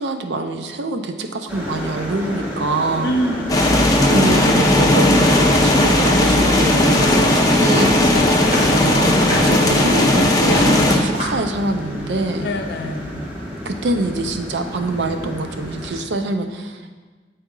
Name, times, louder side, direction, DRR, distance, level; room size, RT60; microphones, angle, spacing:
voice 1, 0.0-3.2 4.0-8.1 8.6-9.2 9.4-12.5 13.7-17.0, right 2 dB, 75° right, 6 dB, 0.5 m, -25 dB
sound 1, 1.5-16.0, equal, 10° right, 1.2 m, -30 dB
voice 2, 3.0-3.6 8.1-8.7 9.4-9.6 12.4-13.1, equal, 60° left, 5 dB, 0.6 m, -26 dB
sound 2, 3.5-11.0, left 1 dB, 20° left, 0.7 m, -16 dB
sound 3, 6.6-10.9 11.1-11.5, equal, 35° right, 1.8 m, -28 dB
7.9 x 4.2 x 3.8 m, 1.4 s
head